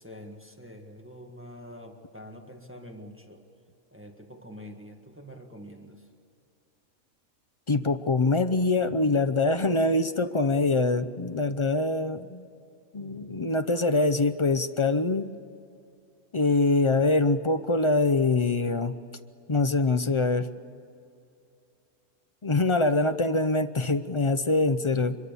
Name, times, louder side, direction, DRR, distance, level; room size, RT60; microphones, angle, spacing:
voice 1, 0.0-3.5 3.9-6.1, equal, 10° right, 3 dB, 1.6 m, -45 dB
voice 2, 7.7-12.5 12.9-15.3 16.3-18.9 19.5-20.5 22.4-25.2, left 3 dB, 40° left, 10 dB, 0.4 m, -24 dB
24.5 x 22.5 x 6.9 m, 2.6 s
omnidirectional pair, 1.4 m